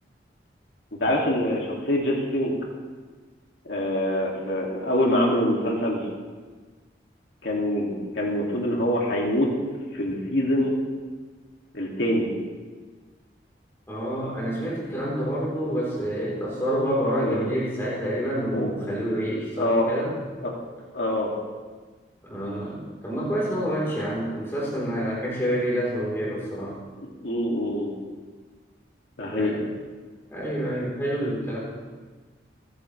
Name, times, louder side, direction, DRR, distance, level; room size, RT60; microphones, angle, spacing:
voice 1, 1.0-2.5 3.7-6.0 7.4-9.5 9.9-10.8 11.7-12.3 17.2-17.4 18.5-18.7 19.6-19.9 20.4-20.5 20.9-21.3 27.2-28.0 29.2-29.6, left 1 dB, 85° left, -2 dB, 2.5 m, -25 dB
voice 2, 13.9-20.2 22.2-26.7 29.2-29.6 30.3-31.6, equal, 15° left, -7 dB, 3.9 m, -28 dB
27.5 x 10.5 x 3.3 m, 1.4 s
head